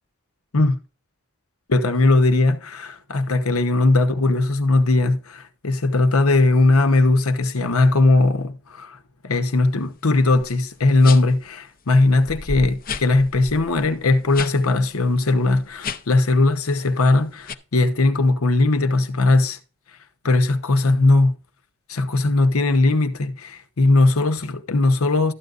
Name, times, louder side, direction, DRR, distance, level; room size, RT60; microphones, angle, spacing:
voice 1, 1.7-9.0 9.2-19.6 20.2-21.4 21.9-25.3, left 2 dB, 85° left, 1.0 m, -19 dB
sound 1, 10.3-10.5 11.0-11.4 11.9-12.0 12.3-14.6 14.9-15.0 15.7-16.2 16.7-17.0 17.5-17.6, left 4 dB, 40° left, 0.6 m, -32 dB
13.0 x 9.4 x 2.5 m
head